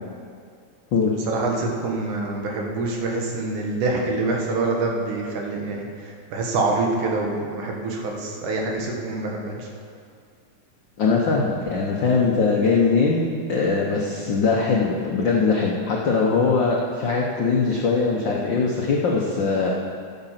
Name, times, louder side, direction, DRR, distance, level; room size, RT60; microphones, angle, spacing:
voice 1, 1.3-9.7, right 3 dB, 80° right, 0 dB, 2.9 m, -26 dB
voice 2, 11.0-19.7, left 4 dB, 75° left, -2 dB, 1.0 m, -21 dB
13.0 x 7.9 x 5.8 m, 2.2 s
omnidirectional pair, 3.5 m